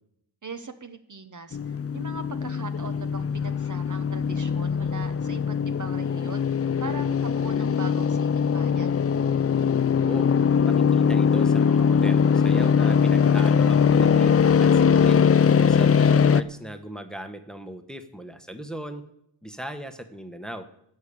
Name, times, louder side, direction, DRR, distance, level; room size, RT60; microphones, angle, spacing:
voice 1, 0.4-6.5 6.8-9.0, right 4 dB, 40° right, 9 dB, 1.0 m, -40 dB
sound 1, 1.5-16.4, left 6 dB, 30° left, 0.4 m, -21 dB
voice 2, 9.9-10.3 10.6-15.3 15.6-19.0 19.4-20.7, right 1 dB, ahead, 8 dB, 1.1 m, -38 dB
13.0 x 6.5 x 8.5 m, 0.74 s
cardioid pair, 90°, 48 cm